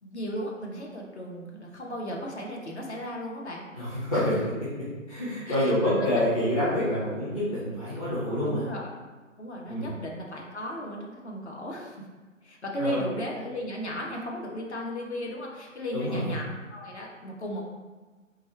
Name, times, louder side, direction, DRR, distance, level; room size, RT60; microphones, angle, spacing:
voice 1, 0.0-4.4 5.5-6.2 8.4-8.9 9.4-12.0 12.4-17.6, equal, 55° left, -1 dB, 0.8 m, -35 dB
voice 2, 3.8-4.5 5.1-8.6 9.7-9.9 12.8-13.0 15.9-16.3, left 1 dB, 25° left, -9 dB, 0.6 m, -27 dB
3.7 x 2.4 x 3.1 m, 1.3 s
figure-of-eight pair, 150°, 39 cm